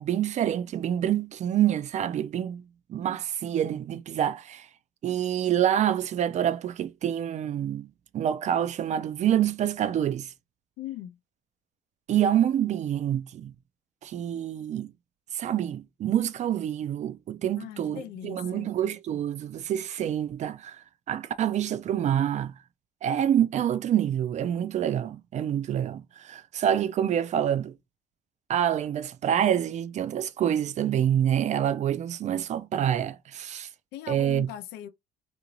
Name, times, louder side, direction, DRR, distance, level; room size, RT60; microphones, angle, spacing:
voice 1, 0.0-2.6 2.9-4.7 5.0-7.9 8.1-10.3 12.1-13.5 14.0-14.9 15.3-22.6 23.0-27.7 28.5-33.7 34.1-34.5, right 10 dB, 45° right, 0.4 m, -27 dB
voice 2, 10.8-11.2 17.6-18.7 33.9-34.9, left 12 dB, 85° left, 0.5 m, -39 dB
2.8 x 2.5 x 3.0 m
cardioid pair, 110°, 17 cm